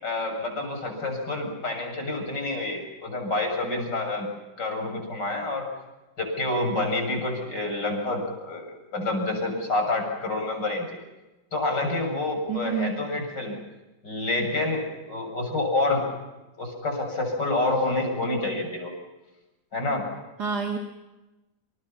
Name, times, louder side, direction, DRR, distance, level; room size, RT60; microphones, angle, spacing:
voice 1, 0.0-4.3 4.6-5.7 6.2-10.9 11.5-13.6 14.0-16.1 16.6-18.9 19.7-20.1, left 2 dB, 70° left, 3 dB, 7.9 m, -28 dB
voice 2, 12.5-13.0 20.4-20.8, right 5 dB, 60° right, 2 dB, 2.8 m, -28 dB
29.0 x 28.5 x 5.8 m, 1.0 s
omnidirectional pair, 1.9 m